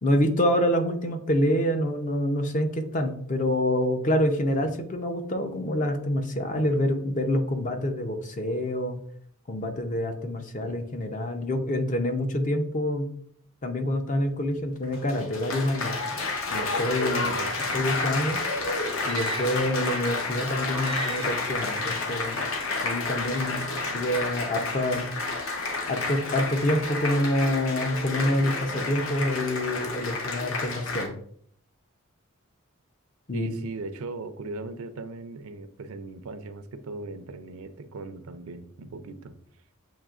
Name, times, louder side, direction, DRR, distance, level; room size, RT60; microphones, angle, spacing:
voice 1, 0.0-9.0 9.5-13.1 13.6-16.0 16.5-17.3 17.7-18.4 19.0-22.5 22.8-23.6 23.9-25.1 25.9-31.2 33.3-33.5, left 1 dB, 35° left, 6 dB, 0.5 m, -26 dB
Applause, 14.8-31.1, left 3 dB, 65° left, 0.8 m, -30 dB
voice 2, 17.1-18.3 33.3-39.4, right 3 dB, 75° right, 11 dB, 0.5 m, -39 dB
sound 1, 19.0-20.3 20.7-21.5, right 3 dB, 25° right, 0.4 m, -36 dB
7.2 x 2.9 x 2.4 m, 0.62 s
head